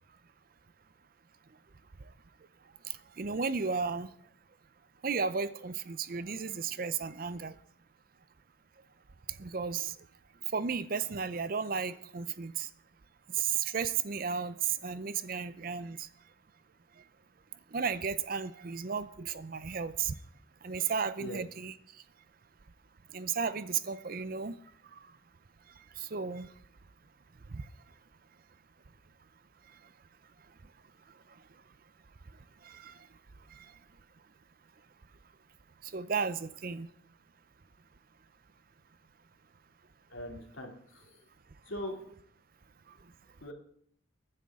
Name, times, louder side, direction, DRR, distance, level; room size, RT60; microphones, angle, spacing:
voice 1, 3.2-4.1 5.0-7.5 9.4-9.9 10.5-12.7 13.4-16.1 17.7-20.1 20.6-21.7 23.1-24.6 26.0-26.5 27.5-27.7 32.6-32.9 33.5-33.6 35.9-36.9, right 6 dB, 45° right, 14 dB, 0.5 m, -34 dB
voice 2, 40.1-41.2 41.7-42.0 43.4-43.5, equal, 75° left, 2 dB, 2.6 m, -41 dB
22.5 x 9.9 x 3.7 m, 0.65 s
head